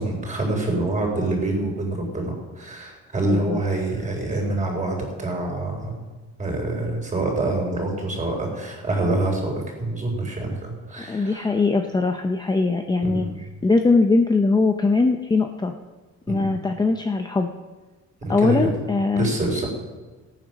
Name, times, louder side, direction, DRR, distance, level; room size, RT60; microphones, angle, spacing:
voice 1, 0.0-6.0 6.4-9.5 9.8-11.5 13.0-13.3 16.3-16.6 18.2-18.7 19.1-19.7, right 2 dB, 25° right, 1 dB, 4.3 m, -26 dB
voice 2, 11.0-13.3 13.6-15.7 16.3-17.5 18.3-19.3, left 3 dB, 15° left, 5 dB, 0.6 m, -21 dB
17.5 x 9.3 x 6.3 m, 1.3 s
cardioid pair, 155°, 30 cm